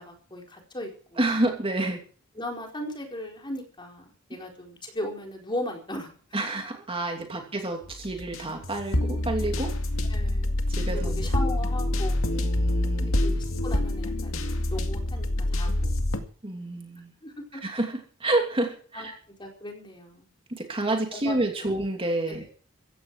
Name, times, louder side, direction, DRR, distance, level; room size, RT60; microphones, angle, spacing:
voice 1, 0.0-1.2 2.4-6.1 10.1-10.6 10.9-12.2 13.2-16.0 17.2-17.6 18.9-19.1 19.4-20.3 21.1-21.3 21.6-21.7 22.3-22.4, left 1 dB, 25° left, 1 dB, 4.4 m, -37 dB
voice 2, 1.2-2.0 6.3-9.7 10.7-11.3 12.3-13.2 16.4-17.1 17.5-19.1 20.5-22.4, right 2 dB, 25° right, 3 dB, 2.8 m, -29 dB
sound 1, 7.8-16.2, left 1 dB, 85° left, 2.1 m, -26 dB
15.5 x 15.5 x 4.8 m, 0.43 s
head